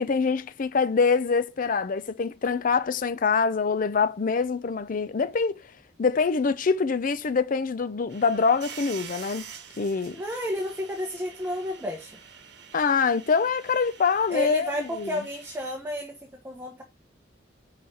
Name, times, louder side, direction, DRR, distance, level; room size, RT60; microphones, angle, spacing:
voice 1, 0.0-5.6 6.0-9.5 9.8-10.2 12.7-15.1, left 5 dB, 50° left, 0.5 m, -25 dB
sound 1, 8.1-15.7, right 7 dB, 70° right, 1.2 m, -46 dB
voice 2, 10.1-12.2 14.3-16.1 16.4-16.8, left 1 dB, 15° right, 1.1 m, -31 dB
5.5 x 4.9 x 4.2 m
head